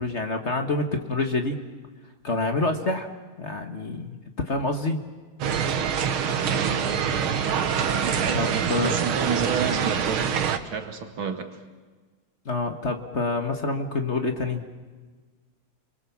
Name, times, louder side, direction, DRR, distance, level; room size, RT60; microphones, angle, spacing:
voice 1, 0.0-1.6 2.2-3.1 3.4-5.0 8.3-9.0 12.4-14.7, left 3 dB, 35° left, 1.7 m, -27 dB
sound 1, 5.4-10.6, right 7 dB, 85° right, 2.1 m, -25 dB
voice 2, 6.4-7.5 8.0-10.3 10.6-11.6, right 6 dB, 70° right, 2.7 m, -31 dB
30.0 x 23.0 x 7.3 m
omnidirectional pair, 2.2 m